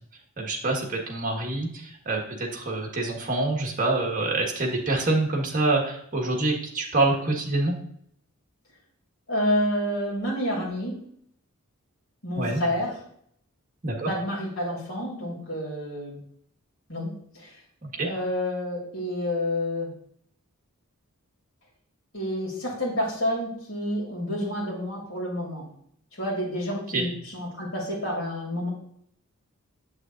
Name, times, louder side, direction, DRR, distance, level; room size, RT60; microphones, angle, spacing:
voice 1, 0.4-7.7 12.4-12.6 13.8-14.1 17.8-18.1 26.9-27.0, right 2 dB, 40° right, 0 dB, 1.4 m, -26 dB
voice 2, 9.3-11.0 12.2-12.9 14.0-16.2 16.9-17.1 17.3-17.5 18.0-19.9 22.1-25.6 26.2-28.7, left 1 dB, 60° left, -4 dB, 2.7 m, -29 dB
7.8 x 6.5 x 2.5 m, 0.67 s
head